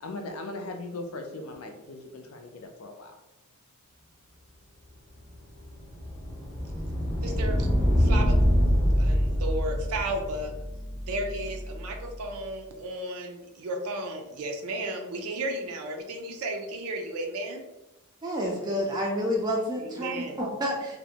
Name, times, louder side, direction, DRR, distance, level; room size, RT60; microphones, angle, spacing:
voice 1, 0.0-3.2 7.3-7.4, left 2 dB, 75° left, 4 dB, 0.4 m, -39 dB
sound 1, 5.2-12.1, equal, 5° left, 0.7 m, -26 dB
voice 2, 7.2-7.7 8.0-8.4 9.0-10.5 11.0-17.7 19.8-20.4, right 1 dB, 85° right, 3 dB, 0.4 m, -34 dB
voice 3, 18.2-21.0, equal, 20° right, -2 dB, 0.3 m, -29 dB
2.5 x 2.1 x 2.7 m, 0.99 s
head